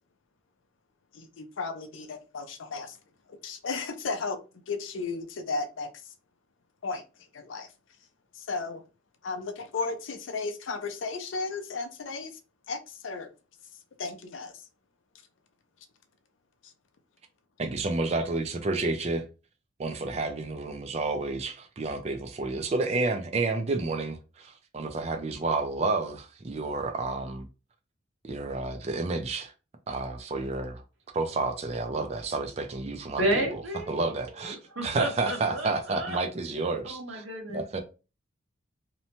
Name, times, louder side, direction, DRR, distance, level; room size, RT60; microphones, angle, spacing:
voice 1, 1.1-3.0 3.4-4.4 4.7-5.9 6.8-7.0 7.3-7.7 8.3-8.8 9.2-12.4 12.7-13.3 14.0-14.6 16.6-16.7, left 4 dB, 75° left, 0.5 m, -34 dB
voice 2, 17.6-19.3 19.8-27.5 28.2-29.5 29.9-30.8 31.1-33.6 33.9-37.2 37.5-37.8, right 3 dB, 30° right, 0.3 m, -30 dB
voice 3, 33.2-36.2 36.8-37.8, right 1 dB, 80° right, 1.0 m, -32 dB
2.8 x 2.1 x 2.8 m
head